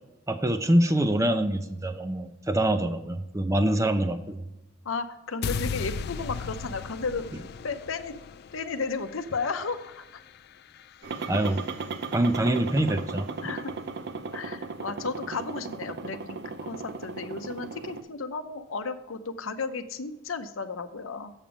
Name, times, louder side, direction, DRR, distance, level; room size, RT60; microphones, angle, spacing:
voice 1, 0.3-4.4 11.3-11.6 12.1-13.3, right 1 dB, 15° right, 8 dB, 0.5 m, -25 dB
voice 2, 4.8-7.3 7.6-8.1 8.5-10.0 13.4-13.7 14.3-21.3, left 4 dB, 85° left, 9 dB, 0.7 m, -34 dB
sound 1, 5.4-11.6, left 5 dB, 50° left, 0.3 m, -37 dB
sound 2, 11.0-18.0, right 4 dB, 55° right, 0.6 m, -36 dB
7.3 x 6.9 x 5.0 m, 0.93 s
head